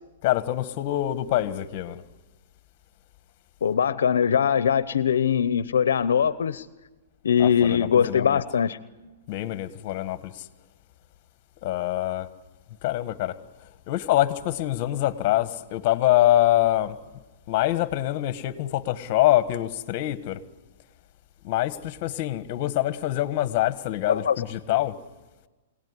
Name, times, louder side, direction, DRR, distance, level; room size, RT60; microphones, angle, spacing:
voice 1, 0.2-2.0 7.4-8.4 9.3-10.4 11.6-12.3 12.8-13.3 13.9-17.0 17.5-20.4 21.4-25.0, left 14 dB, 45° left, 1.6 m, -25 dB
voice 2, 3.6-6.7 7.2-8.8 24.1-24.4, left 8 dB, 85° left, 0.9 m, -22 dB
26.5 x 18.0 x 9.9 m
hypercardioid pair, 140°, 0 cm